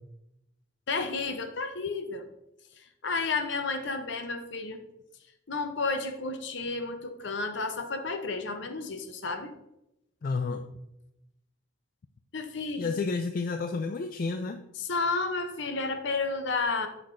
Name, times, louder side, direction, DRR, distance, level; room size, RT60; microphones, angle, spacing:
voice 1, 0.9-2.3 2.8-4.8 5.5-9.5 12.3-12.9 14.8-16.9, left 3 dB, 60° left, 7 dB, 0.7 m, -31 dB
voice 2, 10.2-10.6 12.8-14.6, left 4 dB, 40° left, 7 dB, 0.3 m, -30 dB
8.3 x 6.1 x 2.6 m, 0.87 s
head